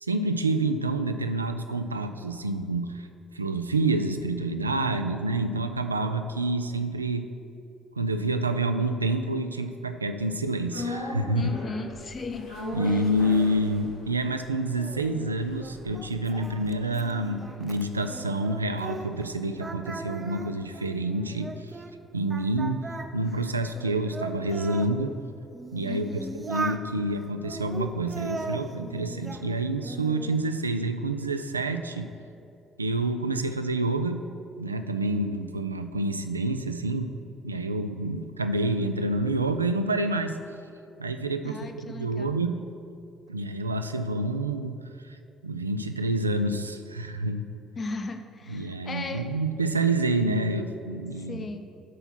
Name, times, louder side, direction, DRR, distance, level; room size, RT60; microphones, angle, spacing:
voice 1, 0.0-3.1 3.3-7.3 8.0-11.5 12.7-21.8 22.1-22.9 23.1-25.2 25.7-32.1 32.8-34.2 34.6-37.1 37.4-40.4 41.0-41.6 41.9-42.6 43.3-44.8 45.0-45.2 45.4-47.5 48.5-51.5, right 2 dB, 85° right, 8 dB, 0.3 m, -28 dB
sound 1, 10.7-19.0 19.3-19.4, left 2 dB, 75° left, 1.5 m, -40 dB
voice 2, 11.3-12.5 12.8-13.3 25.8-26.4 41.4-42.4 47.8-49.3 51.2-51.6, left 3 dB, 35° left, 6 dB, 0.7 m, -36 dB
Singing, 14.8-19.3 19.6-21.9 22.3-24.9 25.5-26.9 27.4-29.5 29.8-30.4, right 3 dB, 25° right, 0.6 m, -38 dB
11.0 x 4.5 x 5.8 m, 2.7 s
figure-of-eight pair, 50°, 0 cm